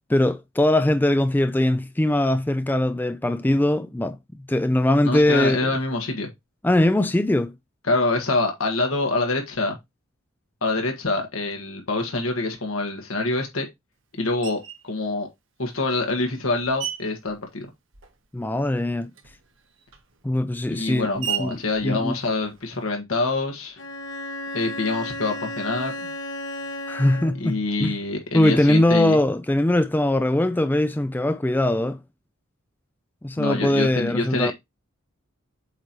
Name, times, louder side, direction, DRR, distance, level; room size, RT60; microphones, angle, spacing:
voice 1, 0.1-4.2 4.5-5.7 6.6-7.5 18.3-19.1 20.2-22.2 26.9-28.0 28.3-32.0 33.2-34.5, left 1 dB, 10° left, 0.3 m, -21 dB
voice 2, 5.0-6.3 7.9-9.8 10.6-13.7 14.1-15.3 15.6-17.7 20.7-23.8 24.5-26.1 27.4-29.2 33.4-34.5, left 2 dB, 75° left, 1.6 m, -25 dB
Screech, 14.4-14.9 15.6-18.4 18.6-22.9, right 10 dB, 65° right, 1.2 m, -37 dB
Bowed string instrument, 23.8-27.6, left 1 dB, 55° left, 1.1 m, -34 dB
8.0 x 3.1 x 4.1 m
head